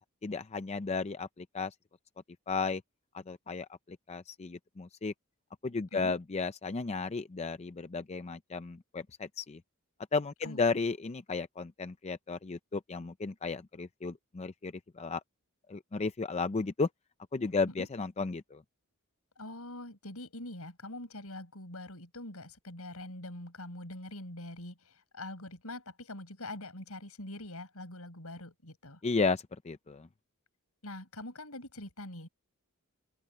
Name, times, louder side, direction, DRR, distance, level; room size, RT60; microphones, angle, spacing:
voice 1, 0.2-1.7 2.5-2.8 3.1-5.1 5.6-9.6 10.1-15.2 15.7-16.9 17.3-18.6 29.0-30.1, left 4 dB, 30° left, 0.5 m, -34 dB
voice 2, 10.4-10.8 17.8-17.9 19.4-29.0 30.8-32.3, left 1 dB, 75° left, 6.3 m, -44 dB
open air
head